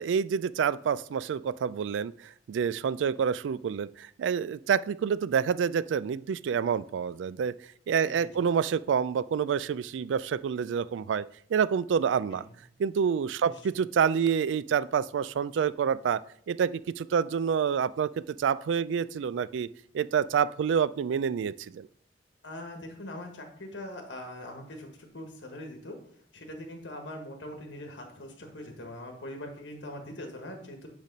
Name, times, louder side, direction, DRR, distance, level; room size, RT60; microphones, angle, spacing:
voice 1, 0.0-7.5 7.9-11.2 11.5-12.4 12.8-16.2 16.5-19.7 19.9-21.9, right 7 dB, 85° right, 17 dB, 0.3 m, -28 dB
voice 2, 8.0-8.4 12.3-12.6 13.4-13.5 22.4-26.0 26.3-30.9, left 1 dB, 70° left, 4 dB, 1.2 m, -42 dB
8.9 x 3.4 x 5.2 m, 0.62 s
head